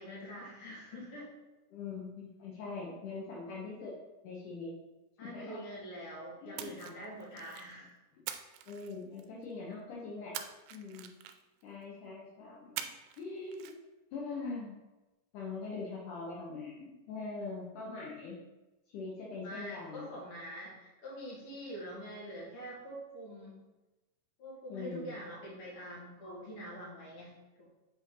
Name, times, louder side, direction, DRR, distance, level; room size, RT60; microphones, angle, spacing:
voice 1, 0.0-1.3 5.2-8.0 19.4-23.5 24.4-27.7, equal, 45° left, -6 dB, 2.5 m, -45 dB
voice 2, 1.7-3.9 4.2-4.7 5.2-5.6 6.4-6.7 8.7-10.4 10.7-11.1 11.6-12.9 13.2-13.7 14.1-14.8 15.3-18.4 18.9-20.1 24.7-25.1 26.2-26.4, left 4 dB, 70° left, -4 dB, 2.4 m, -42 dB
Splash splatter, 6.6-7.7 8.3-9.4 10.3-11.6 12.8-13.3 13.5-13.7, right 10 dB, 85° right, 2.2 m, -43 dB
7.4 x 4.3 x 3.8 m, 1.1 s
omnidirectional pair, 3.9 m